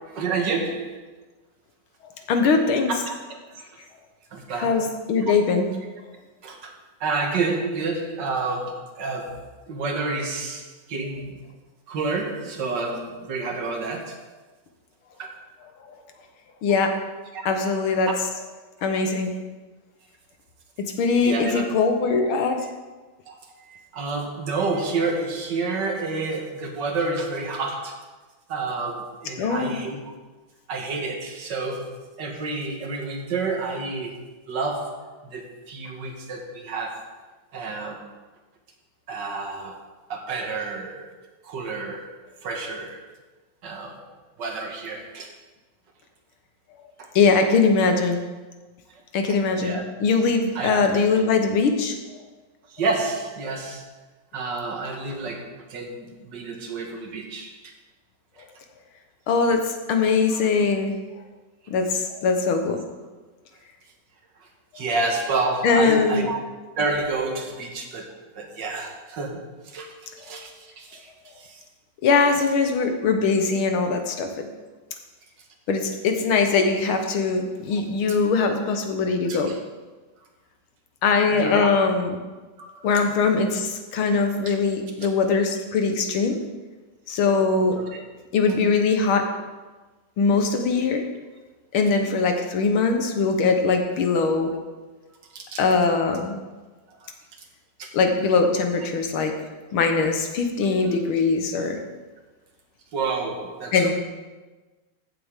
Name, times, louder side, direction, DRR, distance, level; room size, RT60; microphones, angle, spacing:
voice 1, 0.1-1.1 2.9-3.4 4.3-4.9 5.2-5.4 6.4-6.7 7.0-11.4 11.9-14.2 15.2-15.4 17.3-17.8 18.8-18.9 21.2-21.7 23.3-28.0 28.5-30.1 30.7-34.2 34.5-37.1 37.5-38.1 39.1-41.1 41.4-42.2 42.4-43.0 43.6-44.0 44.4-45.3 47.0-47.1 49.6-49.8 50.6-50.9 52.7-53.8 54.3-57.6 60.3-60.5 64.8-66.4 66.8-68.1 68.4-69.9 70.2-71.1 71.4-71.6 79.3-79.6 81.3-81.8 82.6-83.0 87.8-88.0 95.3-95.6 97.0-97.1 97.8-97.9 102.9-103.9, right 3 dB, 60° right, 3 dB, 1.8 m, -29 dB
voice 2, 2.3-2.9 4.6-5.7 16.6-16.9 17.5-18.1 18.8-19.3 20.8-22.6 29.4-29.8 47.2-48.2 49.1-52.2 59.3-60.9 61.7-62.8 65.6-66.3 72.0-74.5 75.7-79.5 81.0-82.2 82.8-86.4 87.1-87.8 88.3-89.3 90.2-91.0 91.7-94.5 95.6-96.4 97.9-99.3 99.7-101.8 103.7-103.9, left 4 dB, 85° left, 5 dB, 1.9 m, -21 dB
15.0 x 7.7 x 3.6 m, 1.2 s
omnidirectional pair, 2.2 m